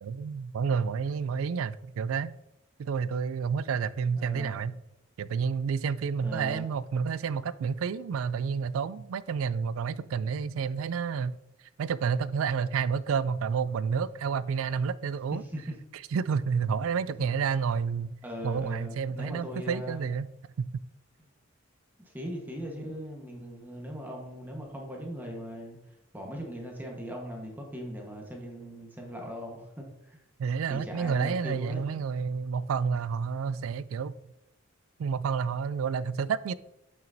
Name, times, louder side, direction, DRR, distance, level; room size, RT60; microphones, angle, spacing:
voice 1, 0.0-2.3 2.8-4.8 5.2-11.4 11.8-15.4 16.1-18.1 18.4-20.3 20.6-20.7 30.4-34.1 35.0-36.5, right 6 dB, 85° right, 0.3 m, -30 dB
voice 2, 4.2-4.6 6.2-6.7 15.3-15.7 18.2-20.1 22.0-25.8 26.1-30.2 30.7-31.8, equal, 10° right, 1.2 m, -39 dB
9.0 x 5.7 x 2.6 m
head